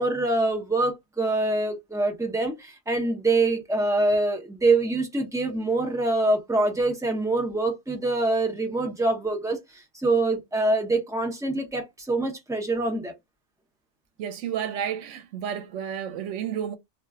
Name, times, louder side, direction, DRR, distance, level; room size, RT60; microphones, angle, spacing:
voice 1, 0.0-13.1, right 2 dB, 5° right, 0.5 m, -25 dB
voice 2, 14.2-16.8, right 9 dB, 85° right, 0.9 m, -31 dB
2.4 x 2.2 x 3.4 m
omnidirectional pair, 1.2 m